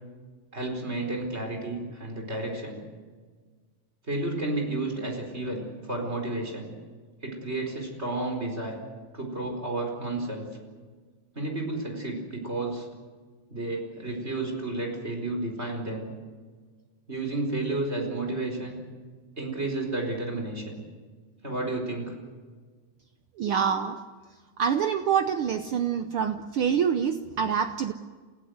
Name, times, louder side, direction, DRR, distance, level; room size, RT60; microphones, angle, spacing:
voice 1, 0.5-2.8 4.1-6.7 7.2-8.8 9.1-10.5 11.3-12.9 13.5-16.1 17.1-18.8 19.4-20.8 21.4-22.1, right 2 dB, 20° right, 2 dB, 4.6 m, -31 dB
voice 2, 23.4-24.0 24.6-27.9, right 7 dB, 80° right, 8 dB, 1.2 m, -26 dB
28.5 x 16.0 x 8.0 m, 1.5 s
omnidirectional pair, 3.4 m